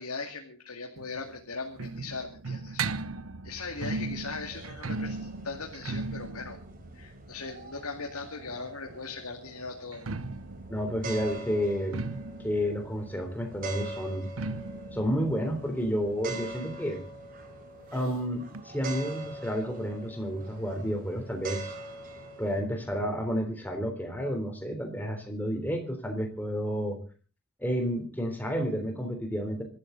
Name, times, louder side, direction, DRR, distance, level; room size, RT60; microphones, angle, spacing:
voice 1, 0.0-2.8 3.4-6.6 6.9-10.0, left 4 dB, 90° left, 2 dB, 2.3 m, -39 dB
sound 1, 1.0-8.7 9.8-17.2 17.4-17.5 17.8-17.9 18.5-18.6, right 3 dB, 70° right, 0.9 m, -38 dB
sound 2, 3.6-22.6, right 3 dB, 40° right, 4.1 m, -44 dB
voice 2, 10.7-12.0 12.4-14.3 14.9-17.0 17.9-21.7 22.4-27.0 27.6-29.6, equal, 10° left, 4 dB, 3.5 m, -31 dB
25.5 x 13.0 x 3.9 m, 0.37 s
head